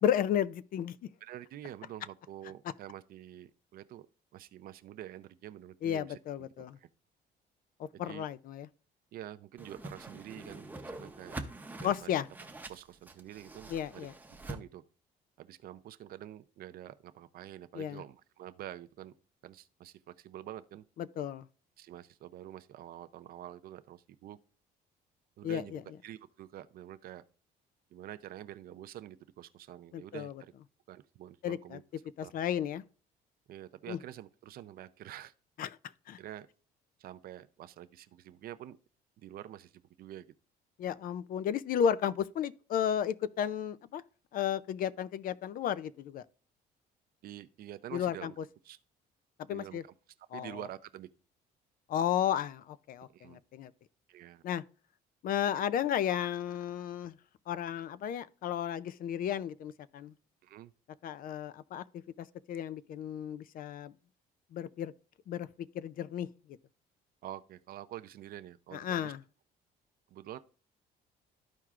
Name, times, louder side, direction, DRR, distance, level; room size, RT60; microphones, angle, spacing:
voice 1, 0.0-1.0 5.8-6.8 7.8-8.7 11.8-12.3 13.7-14.1 17.7-18.0 21.0-21.5 25.4-25.8 29.9-30.3 31.4-31.8 32.2-32.8 33.9-34.0 35.6-35.7 36.1-36.2 40.8-44.0 44.3-46.2 47.9-48.3 49.5-49.8 50.3-50.6 51.9-53.7 54.4-54.6 55.2-57.1 57.5-60.1 61.0-61.8 62.2-63.9 64.5-64.9 65.3-65.5 65.7-66.3 68.7-69.2, left 9 dB, 55° left, 0.5 m, -33 dB
voice 2, 1.2-4.1 4.3-6.5 6.8-6.9 7.9-8.3 9.1-11.4 11.8-12.1 12.7-14.1 14.4-14.8 15.4-19.1 19.4-20.8 21.8-24.4 25.4-27.2 27.9-30.5 30.9-31.8 32.2-32.3 33.5-35.3 36.2-36.5 37.0-38.8 39.2-40.3 47.2-48.3 48.6-48.8 49.5-49.9 50.3-51.1 53.1-53.4 54.1-54.4 60.4-60.7 67.2-69.1 70.1-70.4, right 12 dB, 60° right, 0.5 m, -47 dB
Whoosh swoosh swish, 9.6-14.6, right 2 dB, 10° right, 0.7 m, -45 dB
13.5 x 4.5 x 2.4 m
cardioid pair, 110°, 17 cm